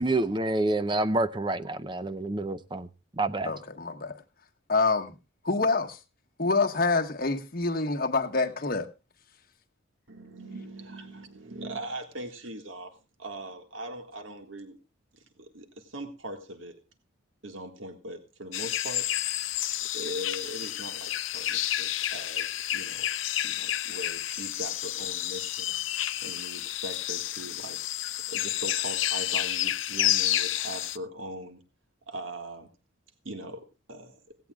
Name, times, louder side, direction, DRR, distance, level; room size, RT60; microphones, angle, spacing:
voice 1, 0.0-2.9 3.2-3.5, right 2 dB, 25° right, 0.6 m, -28 dB
voice 2, 3.4-4.2 4.7-5.1 5.4-6.0 6.4-8.9, left 3 dB, 50° left, 1.4 m, -26 dB
voice 3, 10.1-14.8 15.1-16.8 17.4-19.7 19.9-23.1 23.4-27.8 28.3-31.6 32.1-32.7 33.2-34.4, right 1 dB, 75° right, 1.8 m, -41 dB
sound 1, 18.5-31.0, left 13 dB, 75° left, 0.6 m, -30 dB
17.0 x 16.5 x 2.4 m
head